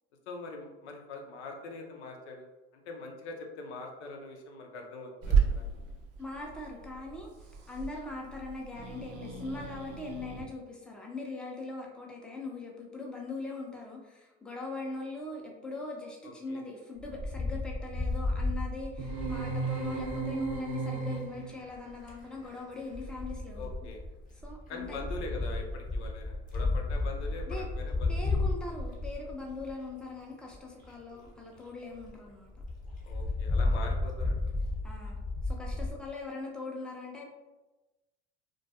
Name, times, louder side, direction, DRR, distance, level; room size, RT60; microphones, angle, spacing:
voice 1, 0.3-2.5 2.7-5.7 16.2-16.6 23.5-24.0 24.7-28.2 31.1-31.4 33.0-34.4, left 3 dB, 85° left, 2 dB, 0.5 m, -43 dB
Growling / Hiss, 5.2-10.4, right 6 dB, 45° right, 0.5 m, -33 dB
voice 2, 6.2-23.9 24.4-25.0 27.5-27.7 28.1-32.5 34.8-37.2, left 3 dB, 5° left, -1 dB, 0.5 m, -41 dB
Wind, 17.0-20.6 21.7-22.2 22.9-29.9 30.5-30.6 30.8-30.9 31.3-31.4 31.6-31.7 32.0-32.1 32.6-35.9, left 2 dB, 25° left, 0.8 m, -33 dB
sound 1, 19.0-21.6, right 4 dB, 75° right, 0.9 m, -34 dB
2.2 x 2.2 x 2.7 m, 1.1 s
hypercardioid pair, 75°, 33 cm